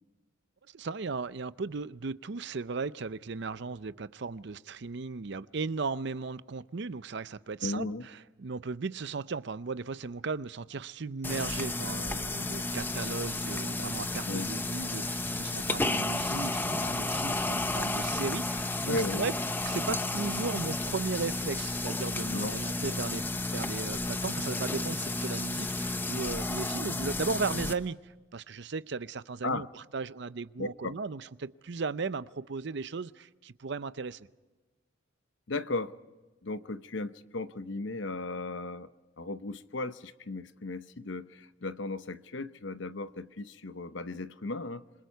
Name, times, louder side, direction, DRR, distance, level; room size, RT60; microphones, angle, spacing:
voice 1, 0.7-19.3 19.7-23.2 23.5-34.3, right 4 dB, 60° right, 0.6 m, -36 dB
voice 2, 7.6-8.0 14.3-14.5 18.9-19.2 22.3-22.5 29.4-29.7 30.6-30.9 35.5-35.9 36.4-38.9 39.2-44.8, left 2 dB, 65° left, 0.9 m, -35 dB
sound 1, 11.2-27.7, left 2 dB, 10° left, 0.7 m, -32 dB
27.0 x 22.5 x 4.6 m
head